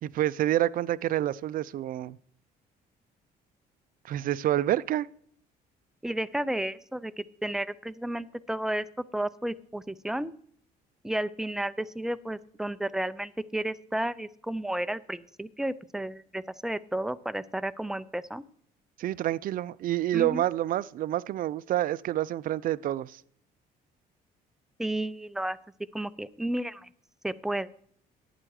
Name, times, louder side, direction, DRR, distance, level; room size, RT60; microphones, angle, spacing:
voice 1, 0.0-2.2 4.0-5.1 19.0-23.2, right 13 dB, 55° right, 0.5 m, -28 dB
voice 2, 6.0-8.9 9.1-10.3 11.0-18.4 20.1-20.4 24.8-25.6 25.9-26.9 27.2-27.7, right 1 dB, 5° right, 0.5 m, -32 dB
11.0 x 9.0 x 4.8 m
cardioid pair, 110°, 17 cm